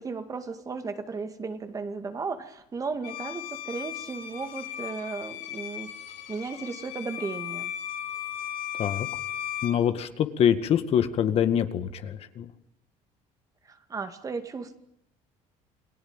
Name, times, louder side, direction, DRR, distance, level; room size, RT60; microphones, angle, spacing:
voice 1, 0.0-5.9 6.3-7.7 13.6-14.7, right 4 dB, 25° right, 8 dB, 2.3 m, -35 dB
Bowed string instrument, 3.0-9.8, left 11 dB, 80° left, 6.6 m, -36 dB
voice 2, 9.6-12.5, left 9 dB, 50° left, 9 dB, 2.0 m, -25 dB
29.5 x 19.0 x 9.1 m, 0.76 s
cardioid pair, 130°, 13 cm